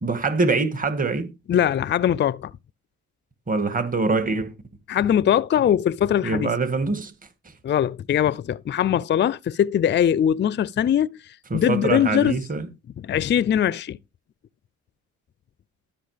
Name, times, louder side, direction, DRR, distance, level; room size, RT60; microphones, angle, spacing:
voice 1, 0.0-1.3 3.5-4.5 6.2-7.1 11.5-12.7, right 3 dB, 25° right, 2.0 m, -24 dB
voice 2, 1.5-2.5 4.9-6.5 7.6-11.1 11.5-12.4 13.0-14.0, left 9 dB, 35° left, 0.5 m, -21 dB
12.5 x 5.8 x 5.0 m
cardioid pair, 90°, 30 cm